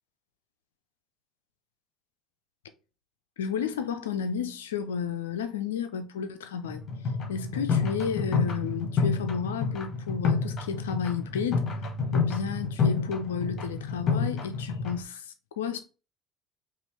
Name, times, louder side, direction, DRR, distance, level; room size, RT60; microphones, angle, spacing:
voice 1, 3.4-6.8 7.3-11.7 12.1-15.8, left 7 dB, 80° left, 0.4 m, -32 dB
sound 1, 6.6-15.0, left 5 dB, 45° left, 1.1 m, -29 dB
5.1 x 2.4 x 3.2 m
figure-of-eight pair, 60°, 0 cm